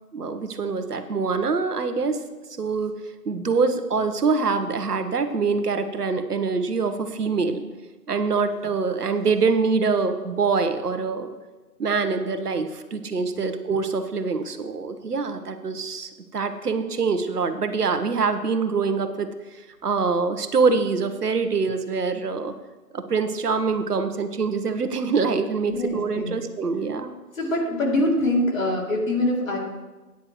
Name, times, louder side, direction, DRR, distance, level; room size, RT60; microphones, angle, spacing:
voice 1, 0.1-2.2 2.6-3.0 3.2-7.6 8.1-11.3 11.8-22.5 22.9-27.1, right 4 dB, 70° right, 9 dB, 1.1 m, -24 dB
voice 2, 25.7-26.3 27.4-29.6, left 1 dB, 55° left, -1 dB, 3.0 m, -24 dB
14.0 x 9.6 x 3.1 m, 1.2 s
figure-of-eight pair, 160°, 48 cm